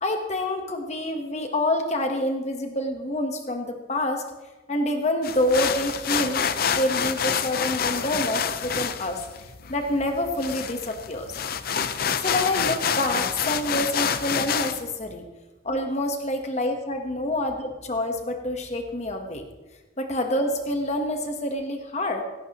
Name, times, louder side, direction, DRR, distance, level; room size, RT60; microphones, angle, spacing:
voice 1, 0.0-4.2 4.7-9.2 9.7-11.3 12.2-15.3 15.6-19.4 20.0-22.2, left 1 dB, 40° left, 5 dB, 1.1 m, -27 dB
sound 1, 5.2-14.8, left 7 dB, 55° left, 0.6 m, -27 dB
17.0 x 15.5 x 3.0 m, 1.1 s
head